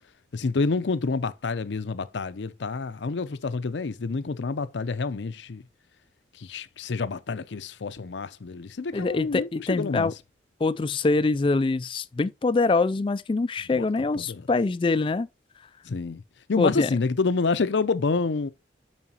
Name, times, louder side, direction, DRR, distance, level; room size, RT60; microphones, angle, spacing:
voice 1, 0.3-5.6 6.4-10.1 13.7-13.9 14.1-14.5 15.8-16.2 16.5-18.5, left 4 dB, 80° left, 0.6 m, -28 dB
voice 2, 8.9-10.1 10.6-15.3 16.6-16.9, left 3 dB, 30° left, 0.3 m, -24 dB
7.2 x 5.7 x 2.9 m
head